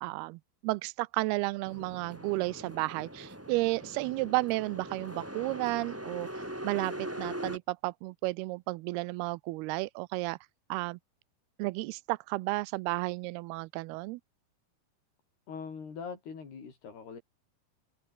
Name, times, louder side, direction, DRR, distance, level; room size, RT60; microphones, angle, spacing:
voice 1, 0.0-10.4 10.7-11.0 11.6-14.2, right 22 dB, 85° right, 2.5 m, -33 dB
sound 1, 1.6-7.6, right 1 dB, 5° right, 2.1 m, -41 dB
voice 2, 15.5-17.2, left 5 dB, 85° left, 7.3 m, -42 dB
omnidirectional pair, 4.5 m